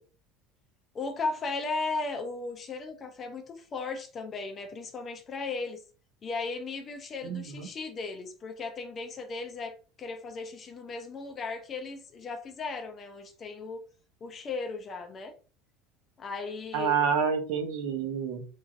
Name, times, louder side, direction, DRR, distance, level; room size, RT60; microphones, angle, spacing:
voice 1, 0.9-5.8 6.2-13.8 14.2-15.3 16.2-17.0, left 3 dB, 25° left, 6 dB, 0.4 m, -36 dB
voice 2, 7.2-7.7 16.7-18.5, right 6 dB, 65° right, 6 dB, 0.7 m, -28 dB
3.0 x 2.5 x 2.4 m, 0.37 s
cardioid pair, 175°, 0 cm